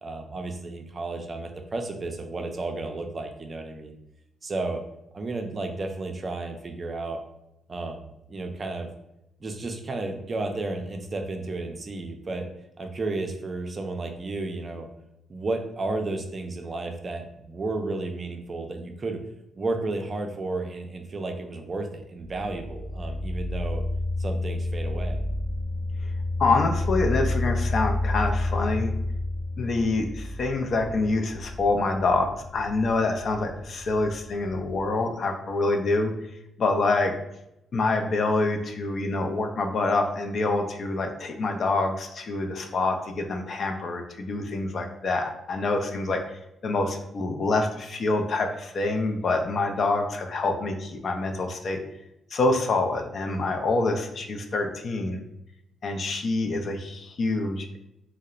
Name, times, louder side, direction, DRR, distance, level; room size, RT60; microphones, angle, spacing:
voice 1, 0.0-4.0 4.4-4.8 5.1-7.2 7.7-8.9 9.4-12.5 12.8-14.9 15.3-19.2 19.6-23.8 24.2-25.2, right 2 dB, 40° right, 4 dB, 0.4 m, -32 dB
sound 1, 22.2-35.0, left 2 dB, 80° left, 0.8 m, -30 dB
voice 2, 26.4-28.9 29.6-36.1 36.6-37.1 37.7-51.8 52.3-55.2 55.8-57.8, left 3 dB, 55° left, 4 dB, 0.3 m, -26 dB
2.7 x 2.0 x 2.3 m, 0.85 s
cardioid pair, 85°, 0 cm